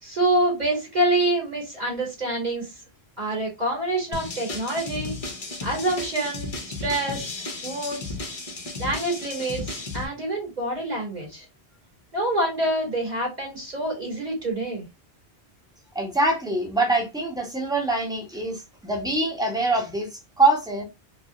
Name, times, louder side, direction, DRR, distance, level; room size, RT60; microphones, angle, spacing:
voice 1, 0.0-2.7 3.2-5.1 5.6-8.2 8.8-11.5 12.1-14.8, right 1 dB, 40° right, 2.1 m, -26 dB
sound 1, 4.1-10.1, left 3 dB, 35° left, 0.8 m, -34 dB
voice 2, 15.9-20.1 20.4-20.8, right 2 dB, 5° right, 1.0 m, -24 dB
4.7 x 2.3 x 2.5 m
omnidirectional pair, 1.1 m